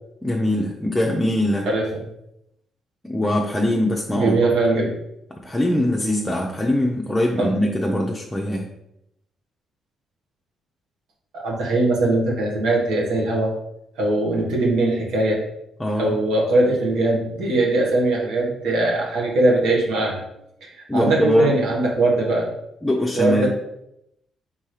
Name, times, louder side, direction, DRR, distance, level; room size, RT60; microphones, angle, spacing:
voice 1, 0.2-1.7 3.0-4.5 5.3-8.7 15.8-16.2 20.9-21.5 22.8-23.5, left 1 dB, 10° left, -1 dB, 0.6 m, -22 dB
voice 2, 1.7-2.0 4.1-4.9 7.4-7.5 11.3-13.5 14.0-15.4 16.0-20.2 20.6-22.5 23.1-23.5, right 2 dB, 90° right, -3 dB, 1.3 m, -21 dB
4.2 x 3.7 x 3.2 m, 0.81 s
cardioid pair, 90°, 0 cm